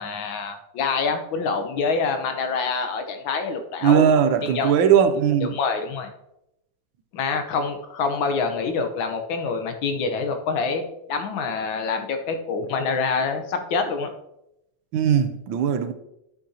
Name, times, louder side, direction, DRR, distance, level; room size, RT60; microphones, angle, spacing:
voice 1, 0.0-4.1 4.4-4.7 5.4-6.1 7.1-14.1, left 4 dB, 85° left, 1.7 m, -26 dB
voice 2, 3.8-5.6 14.9-15.9, right 8 dB, 90° right, 1.5 m, -19 dB
11.0 x 6.7 x 2.8 m
omnidirectional pair, 2.1 m